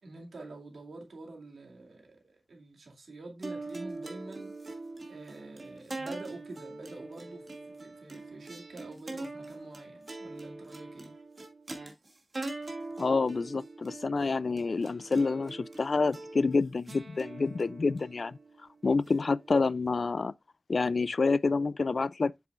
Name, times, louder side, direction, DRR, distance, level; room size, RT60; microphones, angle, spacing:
voice 1, 0.0-4.6 5.1-11.2, right 2 dB, 85° right, 2.2 m, -47 dB
sound 1, 3.4-19.9, right 2 dB, 45° right, 2.0 m, -43 dB
voice 2, 13.0-18.4 18.8-20.3 20.7-22.3, left 4 dB, 55° left, 0.3 m, -28 dB
7.9 x 6.9 x 2.4 m
wide cardioid pair, 105°, 0 cm